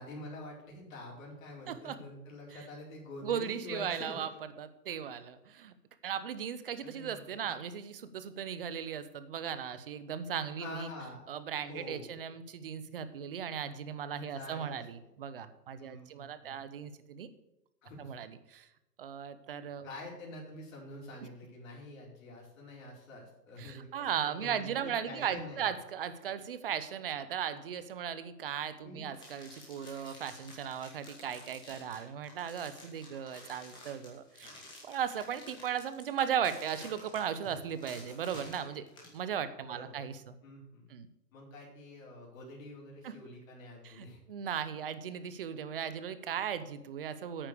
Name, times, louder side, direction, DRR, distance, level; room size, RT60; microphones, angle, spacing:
voice 1, 0.0-4.1 6.8-7.5 10.6-11.2 11.6-12.2 14.1-15.1 15.8-16.6 17.8-18.2 19.8-25.7 28.8-29.1 39.7-40.0 40.4-40.9 41.3-44.2, left 2 dB, 50° left, -2 dB, 4.8 m, -47 dB
voice 2, 1.7-2.0 2.5-2.6 3.2-4.3 4.6-5.7 6.0-10.9 11.3-17.3 18.0-18.7 19.0-19.9 23.6-34.5 34.8-38.8 39.1-40.3 40.9-41.1 43.0-43.2 43.8-47.5, right 8 dB, 35° right, 13 dB, 0.7 m, -37 dB
sound 1, 29.1-39.2, left 2 dB, 10° left, 2.2 m, -52 dB
9.5 x 8.9 x 6.8 m, 0.90 s
hypercardioid pair, 160°, 50 cm